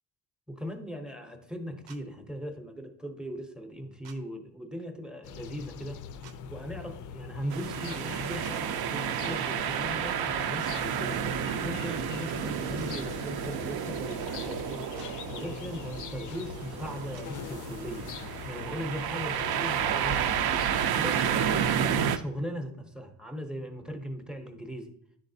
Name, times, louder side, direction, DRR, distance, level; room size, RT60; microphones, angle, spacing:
voice 1, 0.5-6.0 6.5-11.2 11.6-14.9 15.3-18.1 18.5-24.9, equal, ahead, 5 dB, 0.7 m, -39 dB
sound 1, 1.9-2.0 4.0-4.2 6.2-6.4 8.4-8.6 10.6-10.7 12.8-12.9 14.9-15.1 17.1-17.3, right 8 dB, 85° right, 1.0 m, -51 dB
sound 2, 5.2-20.9, left 7 dB, 50° left, 0.4 m, -42 dB
sound 3, 7.5-22.2, right 8 dB, 60° right, 0.5 m, -31 dB
10.0 x 4.1 x 2.7 m, 0.70 s
cardioid pair, 130°, 43 cm